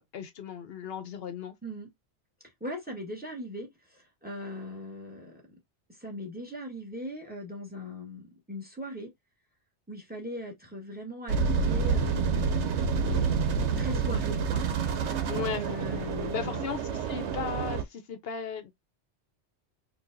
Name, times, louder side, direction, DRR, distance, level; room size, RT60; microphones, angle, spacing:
voice 1, 0.0-1.5 15.3-15.7 16.3-18.7, left 7 dB, 60° left, 0.9 m, -36 dB
voice 2, 2.6-5.4 5.9-9.1 9.9-12.5 13.0-15.1 15.5-16.6, left 1 dB, 10° right, 1.4 m, -40 dB
sound 1, 11.3-17.8, right 5 dB, 80° right, 1.0 m, -28 dB
4.6 x 2.5 x 2.6 m
omnidirectional pair, 1.2 m